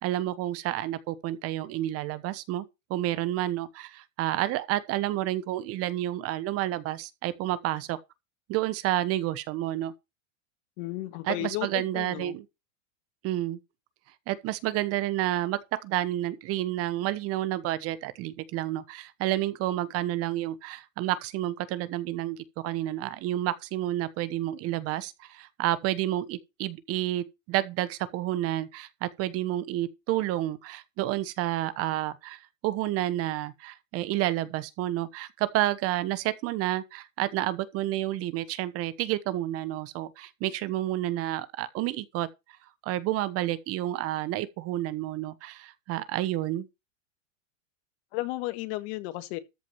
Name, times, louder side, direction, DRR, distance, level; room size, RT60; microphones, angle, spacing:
voice 1, 0.0-2.6 2.9-8.0 8.5-9.9 11.3-12.4 13.2-13.6 14.3-42.3 42.8-46.7, right 15 dB, 35° right, 1.1 m, -30 dB
voice 2, 10.8-12.4 48.1-49.4, left 18 dB, 50° left, 1.8 m, -34 dB
13.5 x 4.8 x 7.2 m
supercardioid pair, 135°, 39 cm